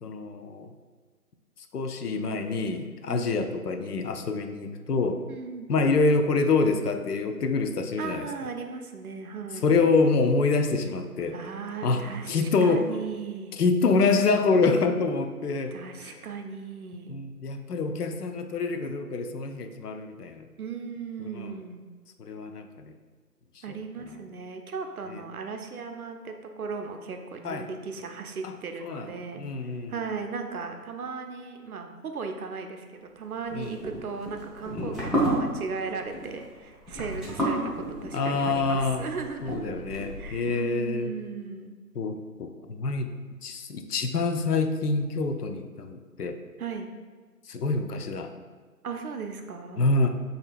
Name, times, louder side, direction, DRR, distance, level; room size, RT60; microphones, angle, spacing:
voice 1, 0.0-0.7 1.7-5.2 5.7-8.3 9.6-11.4 11.8-13.0 13.6-15.7 16.0-16.2 17.1-20.5 21.3-21.5 22.2-22.9 25.1-25.2 27.4-27.7 28.4-28.5 28.8-29.1 29.4-29.9 33.5-33.8 34.7-35.0 38.1-39.0 39.4-41.1 42.0-43.1 43.4-46.4 47.5-48.3 49.8-50.1, left 3 dB, 70° left, 6 dB, 0.5 m, -26 dB
voice 2, 3.1-3.4 5.3-5.7 8.0-9.7 11.3-13.6 15.7-17.2 20.6-21.8 23.6-39.9 40.1-41.8 46.6-46.9 48.8-49.8, right 5 dB, 65° right, 5 dB, 0.6 m, -37 dB
sound 1, 33.5-40.5, right 1 dB, ahead, 0.4 m, -31 dB
3.2 x 2.7 x 4.2 m, 1.5 s
figure-of-eight pair, 155°, 48 cm